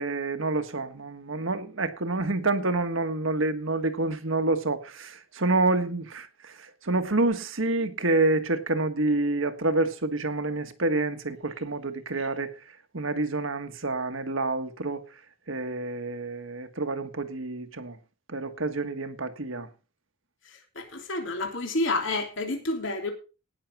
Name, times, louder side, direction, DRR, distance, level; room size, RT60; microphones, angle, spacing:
voice 1, 0.0-12.5 12.9-15.0 15.5-18.0 18.3-19.7, right 2 dB, 70° right, 1.6 m, -28 dB
voice 2, 20.7-23.1, left 2 dB, 60° left, 3.3 m, -29 dB
18.5 x 6.7 x 4.7 m
head